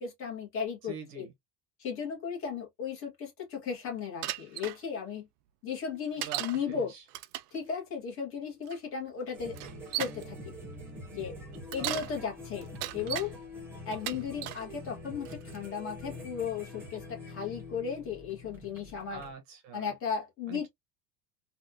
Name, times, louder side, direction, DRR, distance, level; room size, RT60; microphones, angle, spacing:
voice 1, 0.0-1.3 1.8-5.3 5.6-6.9 7.5-9.5 10.0-10.5 11.1-11.3 11.7-12.7 12.9-13.3 13.8-15.3 15.5-19.2 19.7-20.7, left 6 dB, 30° left, 1.4 m, -35 dB
voice 2, 0.8-1.3 6.2-7.0 11.8-12.3 19.1-19.9 20.5-20.7, right 5 dB, 40° right, 0.9 m, -44 dB
Bicycle, 4.2-4.8 6.2-6.6 7.1-7.6 8.7-8.8 9.5-10.2 11.5-12.1 12.6-13.3 13.9-14.6 15.3-15.7, right 15 dB, 85° right, 0.6 m, -36 dB
sound 1, 9.3-19.3, left 1 dB, 5° right, 0.3 m, -45 dB
3.4 x 2.4 x 2.6 m
cardioid pair, 170°, 46 cm